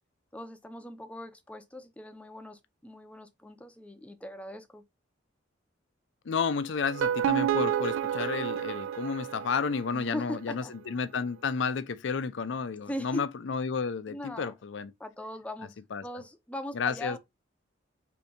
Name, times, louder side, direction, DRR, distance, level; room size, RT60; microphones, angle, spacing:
voice 1, 0.3-4.8 9.9-10.7 12.8-13.3 14.1-14.5 15.0-17.2, left 1 dB, 5° left, 0.5 m, -40 dB
voice 2, 6.2-14.9 15.9-16.0 16.7-17.2, left 5 dB, 65° left, 0.5 m, -31 dB
sound 1, 6.8-9.9, right 10 dB, 85° right, 0.3 m, -29 dB
4.4 x 2.7 x 2.6 m
head